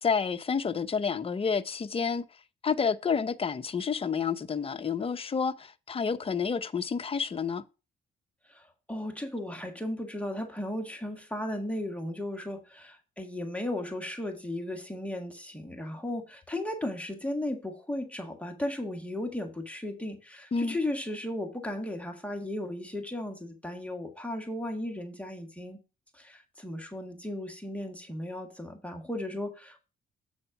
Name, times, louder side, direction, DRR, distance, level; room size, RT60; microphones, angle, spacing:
voice 1, 0.0-2.2 2.6-7.6 20.5-20.8, left 6 dB, 30° left, 0.7 m, -29 dB
voice 2, 8.5-25.8 26.1-29.8, left 1 dB, 5° left, 1.4 m, -35 dB
7.9 x 4.2 x 5.7 m
cardioid pair, 90°, 20 cm